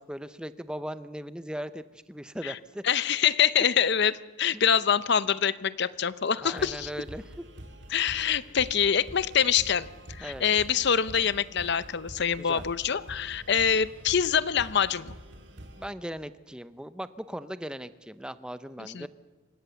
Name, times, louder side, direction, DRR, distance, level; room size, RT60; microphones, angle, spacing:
voice 1, 0.0-2.8 4.5-4.6 6.4-7.3 10.2-10.4 12.4-12.6 15.8-19.1, equal, 5° right, 12 dB, 0.7 m, -38 dB
voice 2, 2.8-4.1 4.4-6.9 7.9-15.2 18.8-19.1, left 7 dB, 55° left, 16 dB, 0.7 m, -25 dB
sound 1, 6.6-15.9, right 1 dB, 60° right, 2.2 m, -46 dB
27.5 x 16.5 x 7.0 m, 1.3 s
head